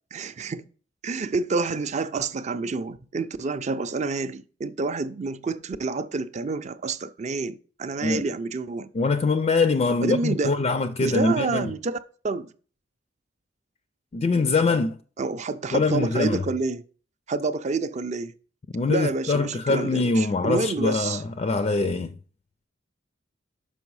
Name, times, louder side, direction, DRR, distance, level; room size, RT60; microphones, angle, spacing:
voice 1, 0.1-0.6 1.0-8.9 10.0-10.5 11.0-12.0 12.2-12.5 15.2-16.8 17.3-18.3 18.9-21.2, right 4 dB, 40° right, 0.4 m, -28 dB
voice 2, 8.9-11.7 14.1-15.0 15.7-16.4 18.7-22.1, left 3 dB, 35° left, 0.3 m, -23 dB
6.2 x 5.3 x 4.7 m
head